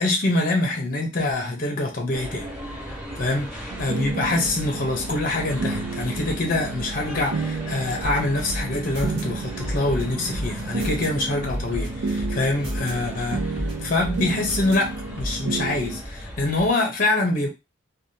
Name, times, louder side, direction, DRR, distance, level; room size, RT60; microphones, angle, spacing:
voice 1, 0.0-2.5 3.2-17.5, left 2 dB, 40° left, 0.7 m, -25 dB
sound 1, 2.1-16.7, equal, 15° right, 1.9 m, -37 dB
sound 2, 3.7-16.0, right 4 dB, 80° right, 0.4 m, -32 dB
sound 3, 8.0-9.2 9.6-11.1 11.5-12.9 13.3-14.8 15.2-15.3, equal, 50° right, 1.3 m, -30 dB
3.3 x 2.3 x 2.7 m
head